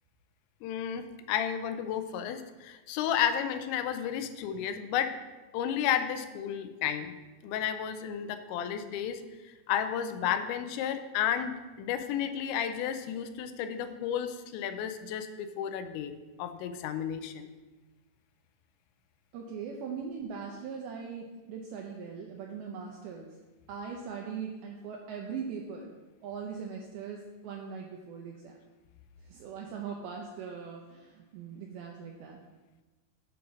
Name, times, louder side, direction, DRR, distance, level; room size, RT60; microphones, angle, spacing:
voice 1, 0.6-5.2 5.5-7.1 7.4-16.1 16.4-17.5, left 9 dB, 85° left, 8 dB, 3.0 m, -32 dB
voice 2, 19.3-23.3 23.7-26.0 26.2-28.5 29.2-32.4, right 6 dB, 85° right, 0 dB, 2.2 m, -40 dB
8.4 x 4.6 x 6.1 m, 1.2 s
omnidirectional pair, 5.1 m